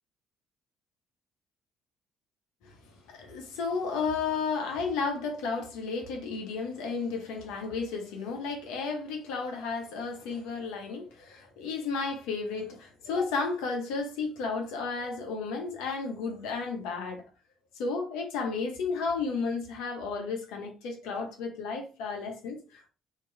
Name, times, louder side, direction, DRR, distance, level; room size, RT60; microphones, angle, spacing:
voice 1, 3.1-17.2 17.7-22.9, left 4 dB, 70° left, 0.9 m, -33 dB
3.0 x 2.8 x 3.3 m
hypercardioid pair, 50°, 0 cm